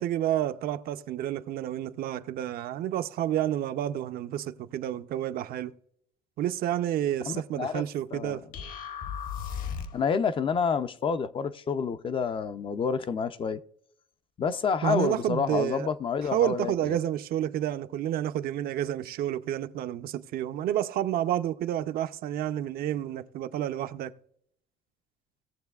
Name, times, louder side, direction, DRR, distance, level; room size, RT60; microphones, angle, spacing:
voice 1, 0.0-5.7 6.4-8.4 14.8-15.9 16.3-24.1, right 11 dB, 60° right, 0.6 m, -30 dB
voice 2, 7.2-7.8 8.1-8.4 9.9-13.6 14.4-17.0, left 6 dB, 30° left, 0.4 m, -29 dB
sound 1, 8.5-10.1, left 7 dB, 50° left, 1.0 m, -35 dB
18.5 x 7.2 x 2.3 m
cardioid pair, 145°, 18 cm